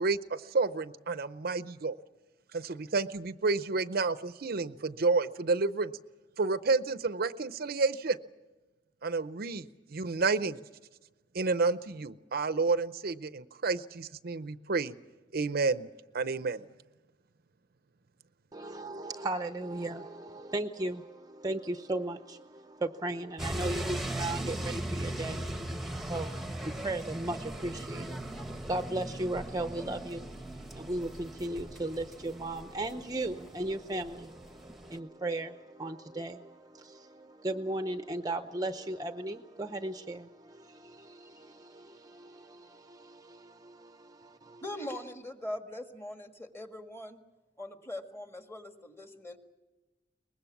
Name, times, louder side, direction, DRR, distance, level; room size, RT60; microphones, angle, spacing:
voice 1, 0.0-1.9 2.5-5.9 6.4-8.2 9.0-10.6 11.3-14.9 15.3-15.9 16.1-16.6, right 3 dB, 55° right, 13 dB, 0.6 m, -30 dB
voice 2, 18.5-44.6, right 2 dB, 20° right, 8 dB, 0.7 m, -37 dB
sound 1, 23.4-35.0, right 1 dB, ahead, 1.1 m, -39 dB
voice 3, 44.6-47.2 47.6-49.4, left 1 dB, 15° left, 5 dB, 1.7 m, -41 dB
23.0 x 20.5 x 7.2 m, 1.2 s
head